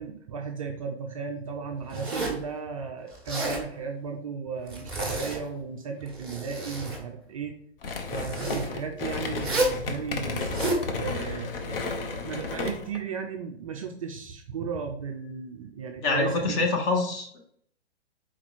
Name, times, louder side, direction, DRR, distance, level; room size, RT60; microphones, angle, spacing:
voice 1, 0.0-7.5 8.1-10.6 10.9-16.7, right 6 dB, 35° right, 2 dB, 0.4 m, -35 dB
Zipper (clothing), 1.9-2.5 3.1-3.6 4.7-5.6 6.0-7.0 8.1-8.7 9.4-9.8 10.3-10.8, right 1 dB, ahead, 1.3 m, -30 dB
sound 1, 7.8-13.0, left 4 dB, 55° left, 0.8 m, -33 dB
voice 2, 16.0-17.4, left 3 dB, 30° left, 2 dB, 1.0 m, -25 dB
4.3 x 2.9 x 4.1 m, 0.64 s
hypercardioid pair, 125°, 33 cm